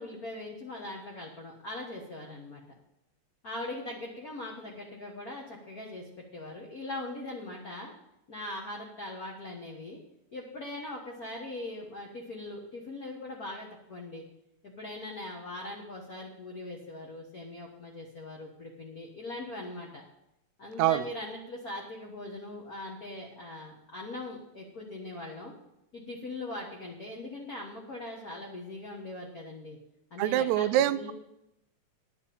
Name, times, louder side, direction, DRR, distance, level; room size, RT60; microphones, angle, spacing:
voice 1, 0.0-2.6 3.4-7.9 8.3-10.0 10.3-14.2 14.6-20.0 20.6-25.5 25.9-29.8 30.1-31.1, left 2 dB, 45° left, -1 dB, 1.2 m, -41 dB
voice 2, 30.2-31.1, right 12 dB, 90° right, 13 dB, 2.0 m, -25 dB
10.5 x 5.7 x 8.4 m, 0.84 s
omnidirectional pair, 3.4 m